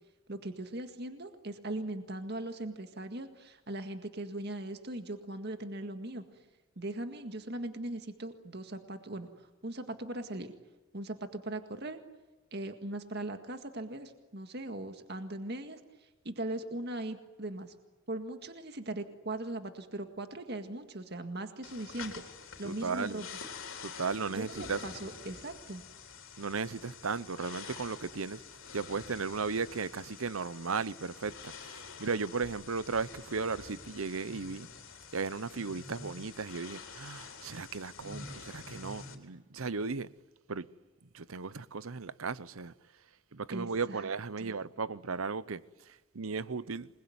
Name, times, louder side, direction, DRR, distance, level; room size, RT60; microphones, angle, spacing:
voice 1, 0.3-6.2 6.8-9.3 9.6-10.5 10.9-12.0 12.5-17.7 18.1-22.2 22.6-23.3 24.3-25.8 43.5-44.1 44.4-44.5, right 1 dB, 50° right, 1.9 m, -39 dB
sound 1, 21.6-39.2, left 5 dB, 70° left, 3.7 m, -48 dB
voice 2, 22.6-23.2 23.8-24.8 26.4-28.4 28.7-34.7 35.1-40.1 40.5-40.7 41.0-42.7 43.3-46.9, right 4 dB, 75° right, 0.8 m, -36 dB
27.5 x 21.5 x 9.5 m
head